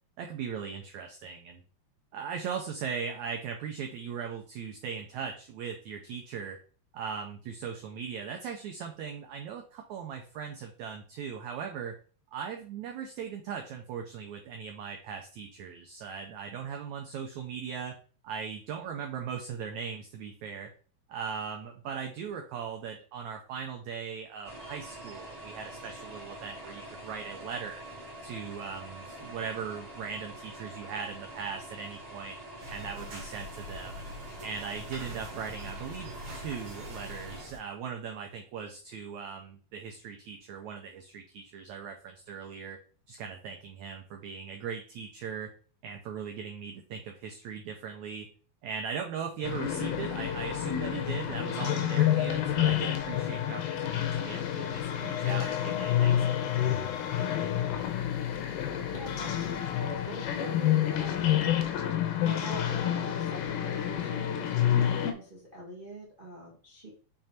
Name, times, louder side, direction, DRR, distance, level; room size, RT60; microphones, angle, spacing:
voice 1, 0.2-1.6 2.1-6.6 6.9-12.0 12.3-18.0 18.2-20.7 21.1-27.8 28.2-32.4 32.7-34.0 34.4-42.8 43.1-45.5 45.8-48.3 48.6-56.8, right 6 dB, 85° right, 3 dB, 1.6 m, -39 dB
sound 1, 24.4-37.4, right 1 dB, 15° right, 1.3 m, -45 dB
sound 2, 32.6-37.6, equal, 40° right, 2.1 m, -44 dB
sound 3, 49.4-65.1, left 11 dB, 80° left, 2.4 m, -29 dB
voice 2, 58.9-61.5 62.2-66.9, right 1 dB, 70° right, -4 dB, 0.5 m, -44 dB
6.3 x 3.6 x 4.3 m, 0.39 s
omnidirectional pair, 4.2 m